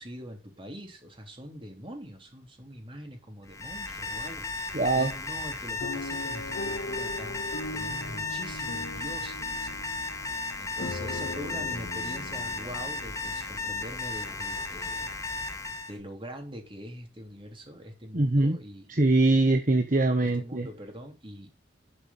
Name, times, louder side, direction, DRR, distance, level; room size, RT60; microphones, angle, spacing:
voice 1, 0.0-9.7 10.6-15.1 15.9-19.2 20.2-21.5, equal, 30° right, 3.4 m, -43 dB
Alarm, 3.5-16.0, left 3 dB, 15° left, 1.4 m, -35 dB
voice 2, 4.7-5.1 18.1-18.6 18.9-20.7, right 2 dB, 45° right, 1.2 m, -23 dB
sound 1, 5.8-13.9 14.5-14.6 14.9-15.1, left 2 dB, 80° left, 0.9 m, -40 dB
11.5 x 5.6 x 5.7 m
head